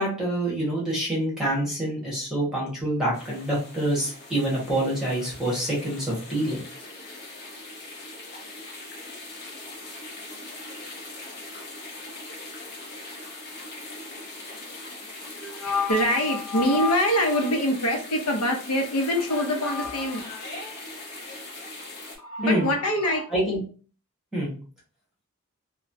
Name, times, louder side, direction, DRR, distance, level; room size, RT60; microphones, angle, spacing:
voice 1, 0.0-6.6 22.4-22.7 23.3-23.6 24.3-24.5, right 1 dB, 5° right, -5 dB, 1.2 m, -26 dB
sound 1, 3.1-22.2, left 2 dB, 45° left, 0.8 m, -41 dB
voice 2, 15.4-20.2 22.2-23.3, left 1 dB, 85° left, 3 dB, 0.6 m, -24 dB
3.1 x 2.1 x 2.6 m, 0.38 s
head